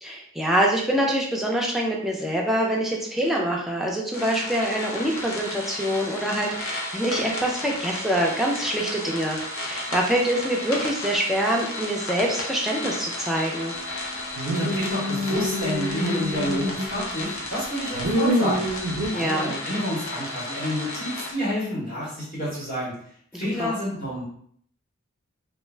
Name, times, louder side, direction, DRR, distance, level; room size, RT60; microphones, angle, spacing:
voice 1, 0.0-13.7 19.1-19.5 23.3-23.7, right 1 dB, ahead, -2 dB, 0.4 m, -25 dB
sound 1, 4.1-21.3, left 1 dB, 85° left, 0.6 m, -33 dB
voice 2, 14.4-18.7 19.0-22.9 23.3-24.2, equal, 45° left, -8 dB, 1.0 m, -29 dB
sound 2, 14.4-17.2 17.6-19.1, equal, 75° right, 0.4 m, -26 dB
2.4 x 2.1 x 3.2 m, 0.63 s
head